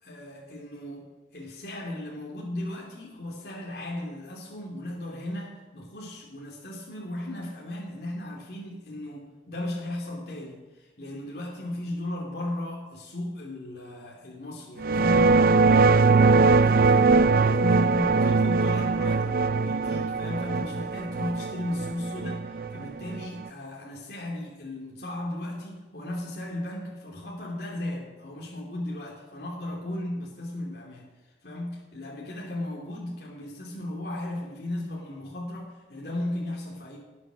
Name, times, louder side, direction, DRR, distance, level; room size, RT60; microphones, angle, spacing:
voice 1, 0.0-16.0 16.4-31.0 31.4-37.0, left 1 dB, 65° left, -5 dB, 3.0 m, -35 dB
sound 1, 14.8-23.5, right 4 dB, 55° right, 0.4 m, -21 dB
19.0 x 8.1 x 6.3 m, 1.2 s
head